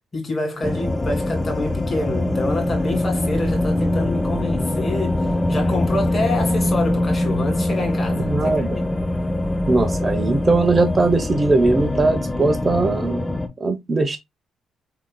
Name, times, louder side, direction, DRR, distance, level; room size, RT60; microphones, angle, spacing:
voice 1, 0.1-5.2 5.5-8.7, left 2 dB, 30° left, 2.5 m, -27 dB
sound 1, 0.6-13.5, left 1 dB, 15° left, 0.7 m, -23 dB
voice 2, 8.3-8.7 9.7-13.2 13.6-14.2, right 3 dB, 30° right, 0.8 m, -20 dB
5.7 x 3.8 x 2.2 m
cardioid pair, 90°, 0 cm